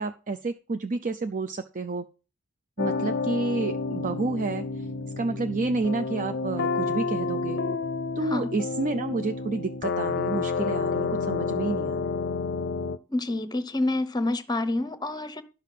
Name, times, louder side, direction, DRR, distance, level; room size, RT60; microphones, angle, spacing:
voice 1, 0.0-2.1 2.8-4.9 5.2-7.6 8.2-12.2, right 3 dB, 40° right, 0.5 m, -30 dB
sound 1, 2.8-13.0, left 4 dB, 55° left, 0.6 m, -30 dB
voice 2, 13.1-15.4, left 2 dB, 20° left, 0.8 m, -28 dB
11.5 x 5.6 x 5.8 m
head